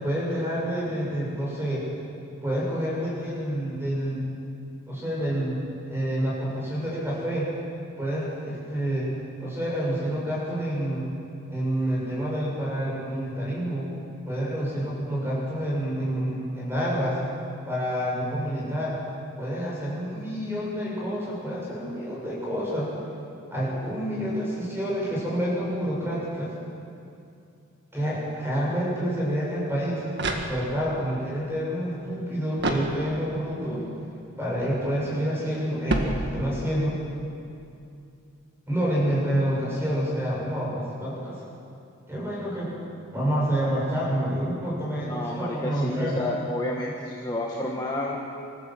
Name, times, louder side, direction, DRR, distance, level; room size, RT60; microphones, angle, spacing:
voice 1, 0.0-1.8 2.4-4.3 4.9-5.6 5.9-7.5 8.0-9.1 9.4-11.1 11.5-13.9 14.3-17.2 17.7-19.0 19.4-22.9 23.5-26.5 27.9-30.0 30.5-33.8 34.4-37.0 38.7-41.4 42.1-42.7 43.1-46.2, equal, 10° right, -6 dB, 7.0 m, -28 dB
sound 1, 30.1-31.0 32.6-33.5 35.9-36.8, right 1 dB, 55° right, 1.9 m, -29 dB
voice 2, 45.1-48.2, left 1 dB, 20° left, -3 dB, 1.5 m, -30 dB
25.5 x 15.0 x 7.8 m, 2.6 s
head